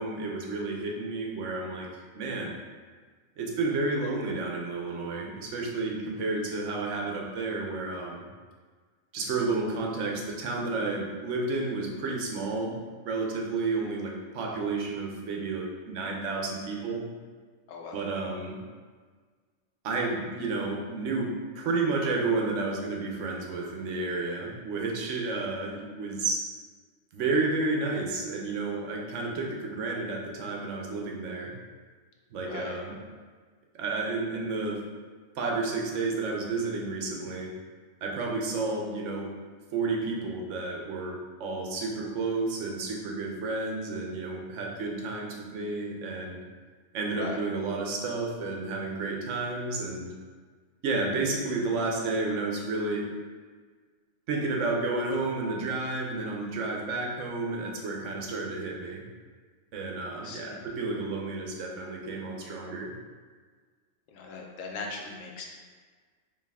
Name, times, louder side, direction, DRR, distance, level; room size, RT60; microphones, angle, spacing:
voice 1, 0.0-1.9 2.1-2.5 3.4-8.2 9.1-17.1 17.9-18.6 19.8-26.5 27.1-31.5 32.3-33.0 33.7-34.8 35.3-37.5 38.0-39.3 39.7-46.4 46.9-50.1 50.8-53.1 54.3-59.1 59.7-62.9, right 3 dB, 70° right, 0 dB, 1.0 m, -31 dB
voice 2, 17.7-18.0 32.5-32.8 47.2-47.4 60.2-60.6 64.1-65.5, left 4 dB, 75° left, 1 dB, 1.0 m, -39 dB
4.6 x 2.7 x 3.5 m, 1.5 s
omnidirectional pair, 1.4 m